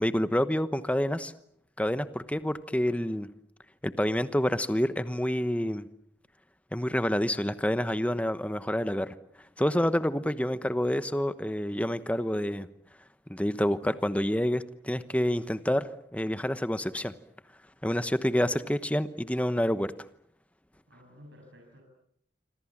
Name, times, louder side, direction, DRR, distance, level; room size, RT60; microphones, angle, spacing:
voice 1, 0.0-1.3 1.8-3.3 3.8-5.9 6.7-9.1 9.6-12.7 13.3-17.1 17.8-19.9, equal, 5° left, 13 dB, 1.0 m, -28 dB
voice 2, 18.3-18.6 20.9-21.8, equal, 80° right, 1 dB, 7.2 m, -54 dB
27.0 x 25.5 x 7.4 m, 0.70 s
head